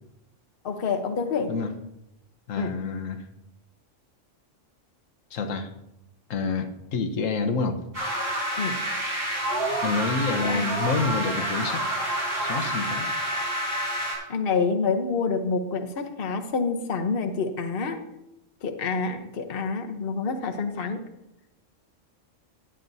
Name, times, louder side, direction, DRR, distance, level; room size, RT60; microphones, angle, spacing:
voice 1, 0.6-1.5 2.6-2.8 8.6-8.8 10.4-10.6 14.3-18.0 18.6-21.0, left 4 dB, 50° left, 5 dB, 1.1 m, -27 dB
voice 2, 2.5-3.2 5.3-5.7 6.3-7.8 9.8-11.9 12.4-13.1, left 4 dB, 90° left, 6 dB, 1.3 m, -28 dB
sound 1, 7.9-14.1, right 1 dB, 85° right, 4.9 m, -28 dB
16.5 x 10.0 x 2.7 m, 0.87 s
omnidirectional pair, 1.3 m